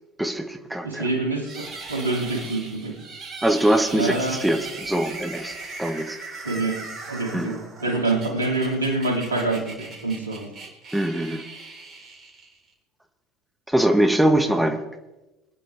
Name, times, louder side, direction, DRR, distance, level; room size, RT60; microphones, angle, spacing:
voice 1, 0.2-1.1 3.4-6.2 7.3-7.6 10.9-11.5 13.7-14.8, right 1 dB, 5° right, 6 dB, 1.4 m, -22 dB
voice 2, 0.8-3.0 3.9-4.4 6.4-6.8 7.1-10.5 14.5-14.6, right 2 dB, 85° right, 1 dB, 2.6 m, -26 dB
sound 1, 1.4-12.7, right 3 dB, 40° right, 4.3 m, -39 dB
23.0 x 10.5 x 3.4 m, 1.0 s
figure-of-eight pair, 70°, 0 cm